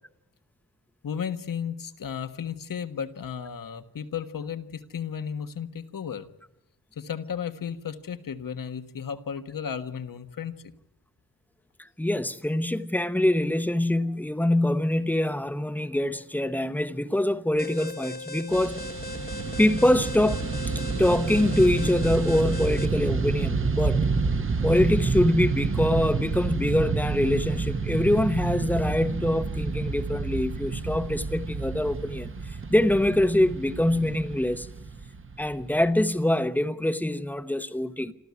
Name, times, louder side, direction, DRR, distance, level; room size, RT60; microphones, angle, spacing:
voice 1, 1.0-6.3 6.9-10.6, left 7 dB, 65° left, 1.5 m, -34 dB
voice 2, 12.0-18.8 19.6-20.4 21.0-24.0 24.6-32.3 32.7-34.7 35.4-38.1, left 1 dB, 5° left, 0.9 m, -24 dB
Alarm, 17.6-22.9, left 2 dB, 25° left, 1.2 m, -38 dB
Fixed-wing aircraft airplane, 18.5-35.9, right 4 dB, 35° right, 1.1 m, -29 dB
27.0 x 14.0 x 9.5 m
wide cardioid pair, 170°, 36 cm